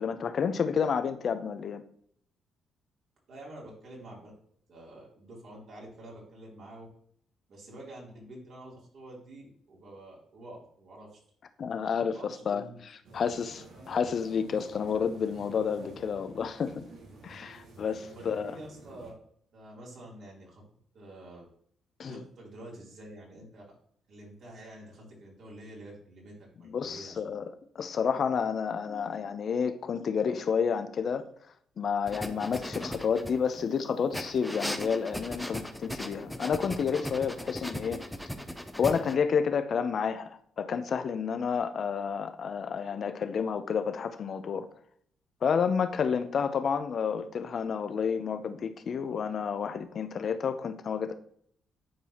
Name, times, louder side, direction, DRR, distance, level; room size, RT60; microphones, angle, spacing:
voice 1, 0.0-1.8 11.6-12.6 13.1-16.8 17.2-18.5 22.0-22.2 26.7-27.4 27.7-31.2 31.8-38.0 38.8-44.7 45.4-51.1, left 6 dB, 55° left, 0.7 m, -30 dB
voice 2, 3.3-4.3 4.7-6.9 7.5-11.2 12.1-12.8 18.0-19.1 19.5-20.6 20.9-21.5 22.0-23.6 24.1-27.2, right 1 dB, 60° right, 3.3 m, -48 dB
sound 1, 13.0-19.1, right 2 dB, 80° right, 2.0 m, -50 dB
sound 2, 32.1-33.7 34.1-39.2, equal, ahead, 0.7 m, -38 dB
10.0 x 4.6 x 2.9 m
cardioid pair, 90°, 0 cm